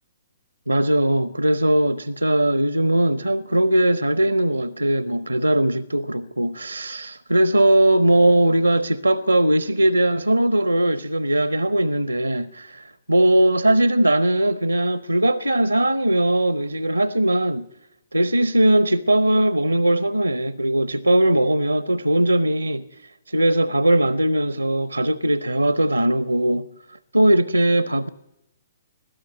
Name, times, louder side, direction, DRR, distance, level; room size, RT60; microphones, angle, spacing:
voice 1, 0.7-17.7 18.1-22.8 23.3-26.7 27.1-28.1, right 1 dB, 85° right, 0.7 m, -19 dB
21.5 x 14.0 x 9.4 m
figure-of-eight pair, 120°, 0 cm